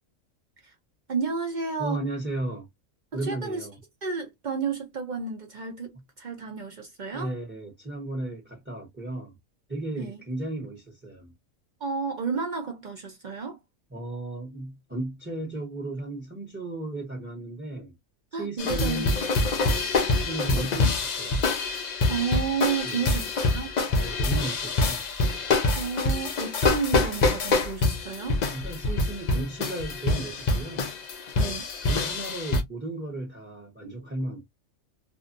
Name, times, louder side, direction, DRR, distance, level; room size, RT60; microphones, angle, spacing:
voice 1, 1.1-2.0 3.1-3.7 4.0-7.3 10.0-10.2 11.8-13.6 18.3-19.1 22.1-23.7 25.8-28.4 31.4-31.6, right 5 dB, 55° right, 0.5 m, -31 dB
voice 2, 1.8-2.7 3.1-3.8 7.1-9.4 9.7-11.3 13.9-17.9 18.4-19.2 19.6-21.4 22.8-23.2 23.9-25.0 28.5-30.9 31.4-34.4, right 2 dB, 10° right, 0.8 m, -35 dB
sound 1, 18.6-32.6, left 3 dB, 60° left, 0.4 m, -26 dB
2.6 x 2.4 x 2.5 m
omnidirectional pair, 1.4 m